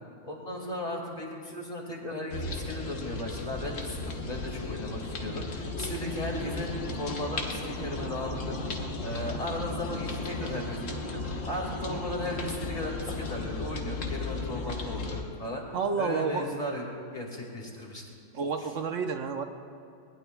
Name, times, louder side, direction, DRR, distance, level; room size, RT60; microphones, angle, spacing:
voice 1, 0.2-8.6 9.0-15.6 16.0-18.0 18.6-18.7, left 1 dB, 30° left, -1 dB, 2.2 m, -36 dB
sound 1, 2.3-15.2, left 2 dB, 85° left, 1.6 m, -35 dB
voice 2, 15.7-16.5 18.3-19.4, right 5 dB, 80° right, 5 dB, 1.2 m, -30 dB
20.5 x 19.0 x 2.3 m, 2.3 s
omnidirectional pair, 1.3 m